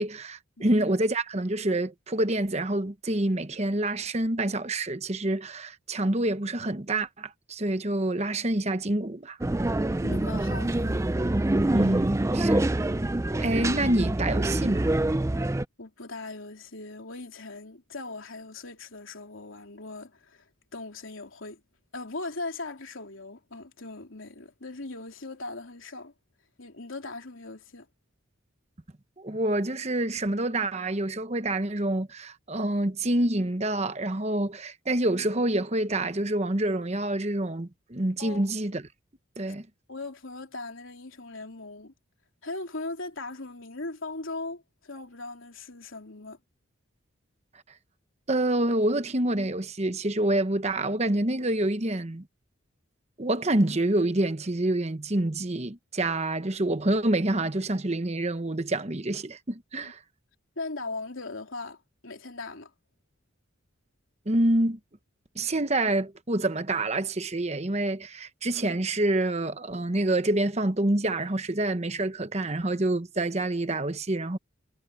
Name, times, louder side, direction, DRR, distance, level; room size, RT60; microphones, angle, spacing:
voice 1, 0.0-9.4 11.7-12.7 13.3-14.9 29.2-38.8 39.4-39.7 48.3-52.3 53.2-60.0 64.3-64.8 65.3-74.4, right 1 dB, 30° right, 1.0 m, -27 dB
sound 1, 9.4-15.6, right 1 dB, 15° right, 0.4 m, -26 dB
voice 2, 10.0-11.1 15.8-21.6 21.9-26.1 26.6-27.9 38.2-38.5 39.9-41.9 42.4-46.4 59.8-59.9 60.6-62.7, left 3 dB, 75° left, 3.2 m, -39 dB
head